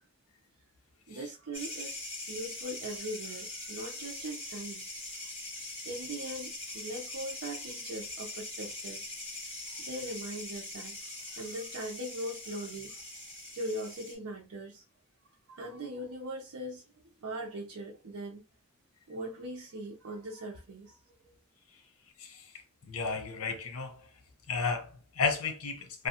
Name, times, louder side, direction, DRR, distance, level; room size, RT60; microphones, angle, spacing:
voice 1, 1.1-2.0 2.3-4.9 5.8-9.0 9.7-11.0 11.3-14.8 15.5-16.8 17.2-18.4 19.1-21.0 21.2-21.4, right 1 dB, 85° right, 0.6 m, -40 dB
sound 1, 1.5-14.1, left 2 dB, 25° left, 1.3 m, -42 dB
voice 2, 22.2-22.5 22.8-24.1 24.5-26.1, left 5 dB, 90° left, 0.7 m, -33 dB
2.7 x 2.3 x 2.7 m
head